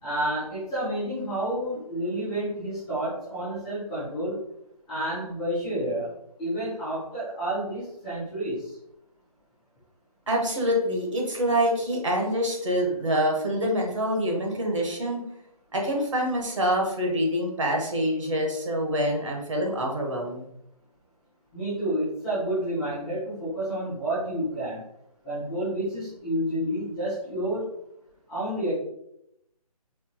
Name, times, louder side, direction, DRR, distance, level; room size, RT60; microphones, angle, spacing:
voice 1, 0.0-4.4 4.9-6.1 6.4-8.7 21.5-24.8 25.2-27.6 28.3-28.7, right 1 dB, 5° left, -16 dB, 0.6 m, -29 dB
voice 2, 10.3-15.2 15.7-20.5, equal, 50° right, 0 dB, 1.0 m, -26 dB
4.4 x 2.5 x 2.7 m, 0.79 s
hypercardioid pair, 170°, 20 cm